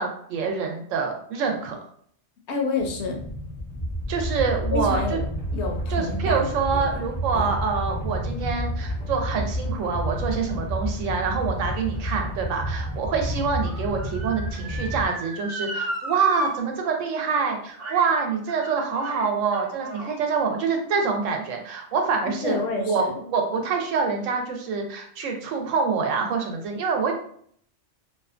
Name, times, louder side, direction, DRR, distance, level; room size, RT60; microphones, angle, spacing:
voice 1, 0.0-1.8 4.1-5.2 5.9-27.1, right 5 dB, 85° right, 3 dB, 0.9 m, -26 dB
voice 2, 2.5-3.2 4.7-5.2 5.5-7.0 7.3-7.5 22.3-23.1, left 3 dB, 70° left, 2 dB, 0.8 m, -29 dB
sound 1, 2.8-15.1, equal, 20° right, 0.5 m, -30 dB
Motor vehicle (road) / Siren, 11.6-16.5 16.8-16.9 17.8-18.1 18.5-20.1 20.8-20.9, right 1 dB, 50° right, 0.8 m, -34 dB
2.6 x 2.2 x 2.4 m, 0.62 s
omnidirectional pair, 1.3 m